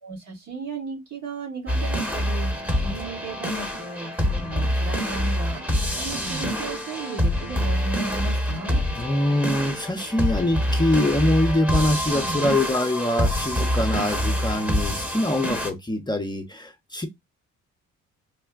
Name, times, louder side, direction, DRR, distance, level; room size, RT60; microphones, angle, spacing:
voice 1, 0.0-2.5 2.8-8.8, right 3 dB, 65° right, 1.7 m, -35 dB
sound 1, 1.7-15.7, equal, 5° right, 1.0 m, -26 dB
voice 2, 9.0-17.1, left 1 dB, 15° left, 0.6 m, -24 dB
3.3 x 2.1 x 3.4 m
cardioid pair, 90°, 30 cm